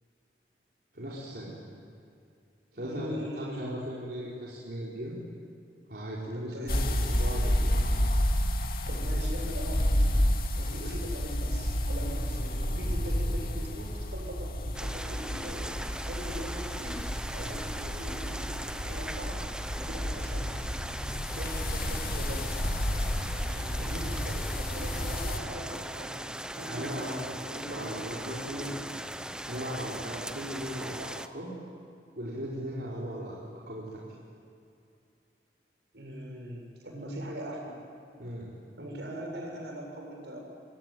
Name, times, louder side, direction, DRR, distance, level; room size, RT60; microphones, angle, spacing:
voice 1, 0.9-1.6 2.7-5.2 5.9-7.8 10.8-10.9 26.7-27.2 27.7-28.7 29.4-31.5 32.2-33.4 33.7-34.0 38.2-38.5, equal, 65° right, -6 dB, 4.8 m, -38 dB
voice 2, 2.7-3.8 6.3-6.9 8.9-10.2 10.6-19.4 19.8-20.7 21.3-22.5 23.3-26.1 26.5-28.1 28.4-28.8 35.9-37.8 38.8-40.4, equal, 80° right, 1 dB, 7.6 m, -41 dB
sound 1, 6.7-25.4, equal, 55° left, 2.4 m, -30 dB
sound 2, 14.7-31.3, right 1 dB, 5° right, 0.8 m, -39 dB
27.0 x 23.5 x 9.3 m, 2.5 s
head